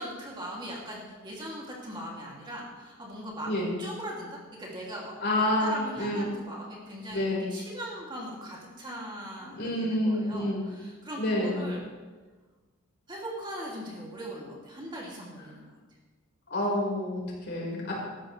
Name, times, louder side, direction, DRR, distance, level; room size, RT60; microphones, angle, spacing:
voice 1, 0.0-5.1 5.4-11.8 13.1-15.6, equal, 20° right, -3 dB, 2.6 m, -40 dB
voice 2, 5.2-6.3 7.1-7.5 9.6-10.6 11.2-11.6 16.5-17.9, left 1 dB, 55° left, -3 dB, 4.7 m, -28 dB
17.5 x 13.0 x 3.3 m, 1.3 s
head